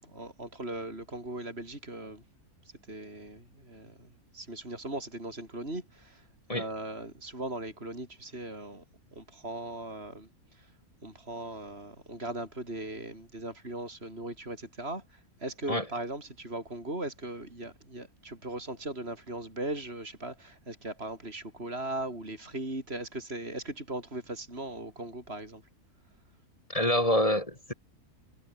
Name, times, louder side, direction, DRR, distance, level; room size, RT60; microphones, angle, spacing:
voice 1, 0.0-2.2 2.9-6.3 6.5-8.8 9.1-10.7 11.0-25.6, right 2 dB, 40° right, 6.4 m, -39 dB
voice 2, 26.7-27.7, left 1 dB, 20° left, 3.0 m, -26 dB
omnidirectional pair, 1.6 m